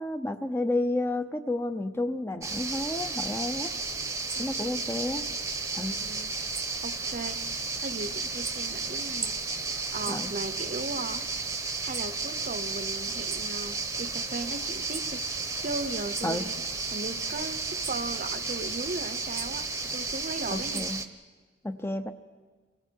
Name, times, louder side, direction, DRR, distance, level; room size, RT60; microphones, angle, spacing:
voice 1, 0.0-3.7 4.4-5.3 5.7-6.0 10.1-10.3 16.2-16.4 20.5-21.0 21.6-22.1, left 2 dB, 10° left, 8 dB, 0.7 m, -31 dB
sound 1, 2.4-21.1, right 4 dB, 15° right, 1.0 m, -33 dB
voice 2, 4.3-5.0 6.0-6.4 6.8-9.4 9.7-11.3 11.8-15.2 15.6-16.6 16.9-20.9, right 3 dB, 40° right, 11 dB, 0.8 m, -37 dB
28.5 x 24.5 x 4.6 m, 1.4 s
head